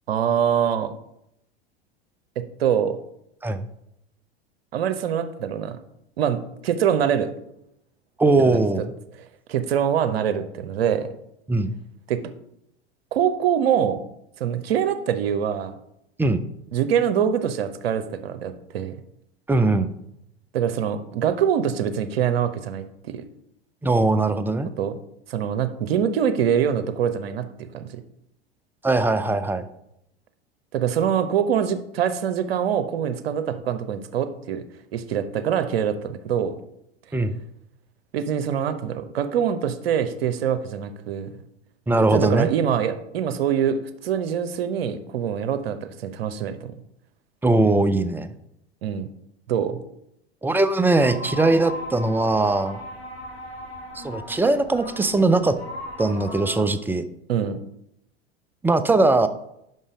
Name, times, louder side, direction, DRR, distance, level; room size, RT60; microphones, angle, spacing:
voice 1, 0.1-0.9 2.4-3.0 4.7-5.8 6.2-7.3 8.4-8.6 9.5-11.1 12.1-12.2 13.1-14.0 14.4-15.7 16.7-18.9 20.5-23.3 24.8-25.0 25.3-27.9 30.7-34.6 34.9-36.0 36.2-36.6 38.1-41.3 42.1-46.7 48.8-49.1 49.5-49.8 57.3-57.6, right 8 dB, 70° right, 10 dB, 0.8 m, -24 dB
voice 2, 8.2-8.9 11.5-11.7 16.2-16.4 19.5-19.9 23.8-24.7 28.8-29.6 37.1-37.4 41.9-42.5 47.4-48.3 50.4-52.8 53.9-55.6 56.0-57.0 58.6-59.3, right 2 dB, 5° right, 11 dB, 0.4 m, -20 dB
sound 1, 51.0-56.6, left 1 dB, 75° left, 1.8 m, -37 dB
5.9 x 5.4 x 5.0 m, 0.78 s
figure-of-eight pair, 85°, 31 cm